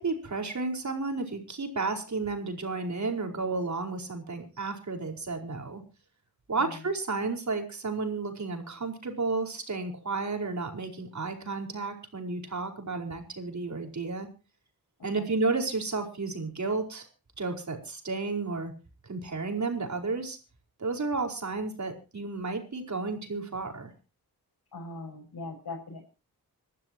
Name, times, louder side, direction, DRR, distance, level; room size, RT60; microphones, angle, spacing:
voice 1, 0.0-5.8 6.5-14.3 15.0-17.1 17.4-18.7 19.0-20.4 20.8-23.9, right 3 dB, 50° right, 3 dB, 4.9 m, -32 dB
voice 2, 24.7-26.0, left 3 dB, 75° left, -1 dB, 6.4 m, -40 dB
26.5 x 12.0 x 3.0 m, 0.32 s
cardioid pair, 85°, 37 cm